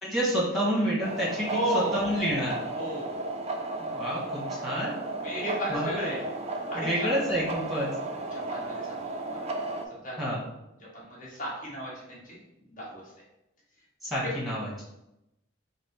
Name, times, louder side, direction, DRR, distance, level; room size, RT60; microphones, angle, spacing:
voice 1, 0.0-2.6 3.8-4.9 5.7-6.0 6.7-7.9 10.2-10.4 14.0-14.8, equal, ahead, -6 dB, 1.3 m, -29 dB
sound 1, 1.0-9.8, right 2 dB, 30° right, 0.4 m, -34 dB
voice 2, 1.5-1.9 2.8-3.2 5.2-6.2 6.5-7.1 8.3-8.9 9.3-9.4 10.0-10.1 10.9-12.2 12.8-13.0 14.2-14.3, equal, 40° left, -6 dB, 1.4 m, -33 dB
4.2 x 2.1 x 4.2 m, 0.88 s
head